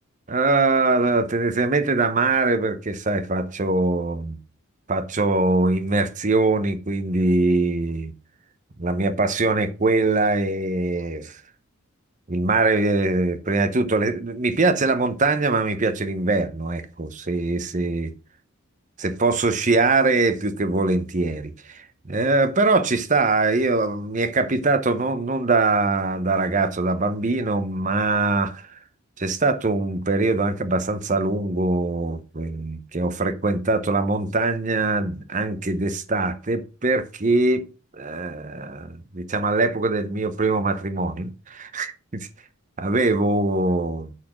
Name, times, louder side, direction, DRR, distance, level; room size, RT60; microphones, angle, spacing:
voice 1, 0.3-4.4 4.9-8.1 8.8-11.4 12.3-18.1 19.0-28.8 29.2-37.6 38.0-41.9 42.8-44.1, right 3 dB, 35° right, 0.8 m, -22 dB
8.6 x 4.3 x 5.9 m
head